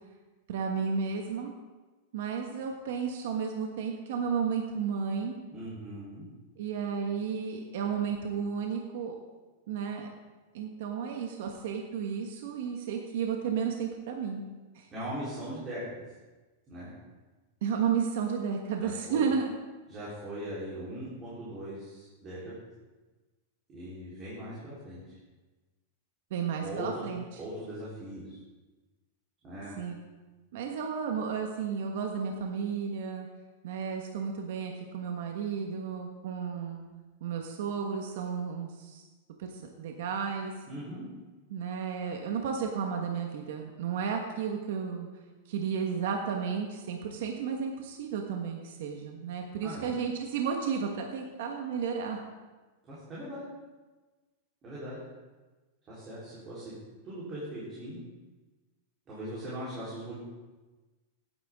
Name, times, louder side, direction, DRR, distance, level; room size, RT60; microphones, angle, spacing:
voice 1, 0.5-1.5 2.1-5.4 6.6-9.1 9.7-10.1 10.5-14.4 14.7-14.9 17.6-19.4 26.3-27.4 29.8-30.0 30.5-33.3 33.6-36.9 37.2-39.1 39.4-40.5 41.5-45.1 45.5-52.2, right 6 dB, 65° right, 2 dB, 1.4 m, -33 dB
voice 2, 5.5-6.2 14.9-16.0 16.7-16.9 18.8-19.3 19.9-22.6 23.7-25.2 26.6-27.0 27.4-28.4 29.4-29.8 40.7-41.0 49.6-49.9 52.9-53.5 54.6-55.0 55.9-56.7 57.0-58.0 59.1-60.1, right 1 dB, 25° right, -10 dB, 3.9 m, -40 dB
16.0 x 9.7 x 3.7 m, 1.2 s
supercardioid pair, 160°, 0 cm